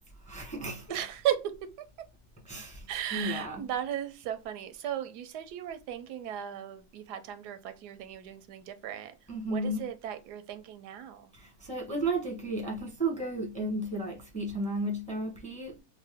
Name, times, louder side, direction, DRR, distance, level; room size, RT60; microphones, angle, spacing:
voice 1, 0.3-1.0 2.4-2.8 3.1-3.7 9.3-9.9 11.3-15.8, right 2 dB, 5° left, 0.7 m, -33 dB
voice 2, 0.9-1.9 2.9-9.1 9.5-11.3, right 10 dB, 90° right, 1.2 m, -36 dB
3.7 x 2.1 x 3.3 m
omnidirectional pair, 1.7 m